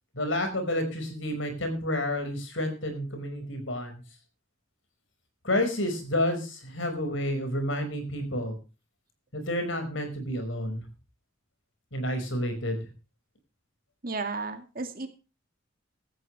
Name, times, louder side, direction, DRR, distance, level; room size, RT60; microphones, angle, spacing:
voice 1, 0.1-4.0 5.4-8.6 9.3-10.9 11.9-12.9, left 1 dB, 75° left, 6 dB, 5.2 m, -30 dB
voice 2, 14.0-15.1, right 3 dB, 45° right, 6 dB, 2.2 m, -33 dB
17.0 x 13.5 x 3.3 m, 0.32 s
head